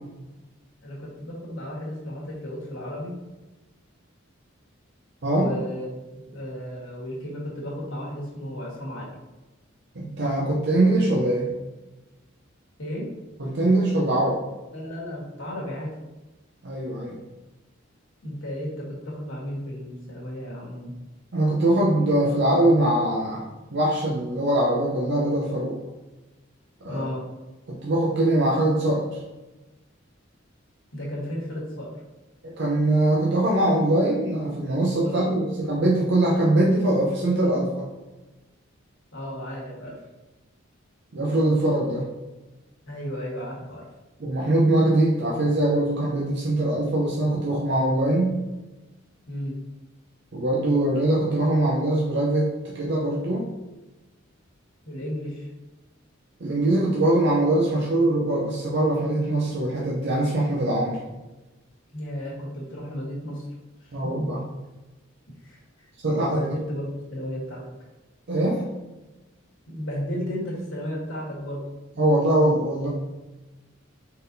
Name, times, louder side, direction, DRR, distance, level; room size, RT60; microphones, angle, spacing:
voice 1, 0.8-3.2 5.3-9.1 12.8-13.1 14.7-15.9 18.2-20.9 26.8-27.2 30.9-31.9 35.0-35.3 39.1-40.0 42.9-43.8 49.3-49.6 54.8-55.5 61.9-63.5 63.8-64.1 65.4-65.9 66.2-67.6 69.7-71.6, equal, 80° left, -4 dB, 1.4 m, -34 dB
voice 2, 5.2-5.5 9.9-11.5 13.4-14.4 16.6-17.2 21.3-23.5 23.7-25.8 26.8-27.0 27.7-29.2 32.4-37.9 41.1-42.1 44.2-48.4 50.3-53.5 56.4-61.0 63.9-64.4 66.0-66.4 68.3-68.6 72.0-72.9, right 1 dB, 60° right, -4 dB, 0.6 m, -22 dB
4.0 x 3.8 x 2.6 m, 1.1 s
head